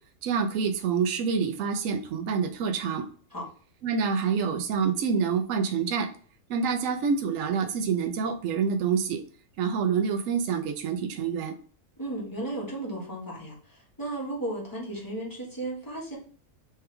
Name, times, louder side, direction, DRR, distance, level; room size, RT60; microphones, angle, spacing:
voice 1, 0.2-3.0 3.8-6.1 6.5-9.2 9.6-11.6, right 6 dB, 65° right, 5 dB, 1.0 m, -27 dB
voice 2, 12.0-16.2, right 1 dB, 15° left, -4 dB, 1.2 m, -35 dB
3.5 x 3.2 x 3.3 m, 0.43 s
omnidirectional pair, 1.5 m